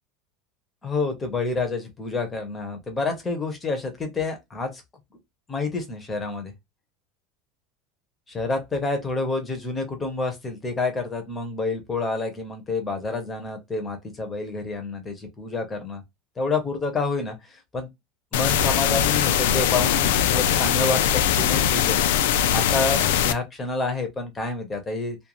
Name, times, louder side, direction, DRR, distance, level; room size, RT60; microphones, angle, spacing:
voice 1, 0.8-4.8 5.5-6.5 8.3-16.0 16.4-17.9 18.3-22.0 22.5-25.2, left 3 dB, 15° left, 0.7 m, -28 dB
sound 1, 18.3-23.3, left 10 dB, 90° left, 0.3 m, -21 dB
2.4 x 2.3 x 2.9 m
cardioid pair, 175°, 0 cm